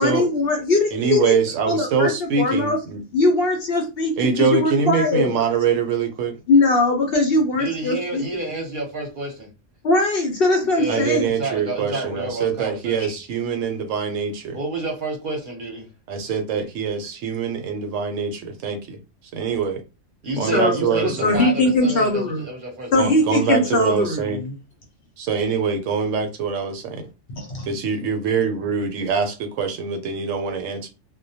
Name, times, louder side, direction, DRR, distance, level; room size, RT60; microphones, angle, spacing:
voice 1, 0.0-1.3 1.7-2.1 2.4-2.8 3.1-5.4 6.5-8.2 9.8-11.3 20.5-22.4 22.9-24.5 27.3-27.7, left 2 dB, 60° left, 2 dB, 0.7 m, -20 dB
voice 2, 0.9-3.0 4.2-6.4 10.9-14.6 16.1-19.0 19.3-19.8 20.4-21.5 23.0-24.4 25.2-27.1 27.7-30.9, right 6 dB, 75° right, 6 dB, 0.9 m, -24 dB
voice 3, 7.5-9.5 10.7-13.1 14.5-15.9 20.2-24.0 25.5-25.6, right 2 dB, 50° right, 1 dB, 0.8 m, -30 dB
2.2 x 2.1 x 2.7 m, 0.29 s
omnidirectional pair, 1.3 m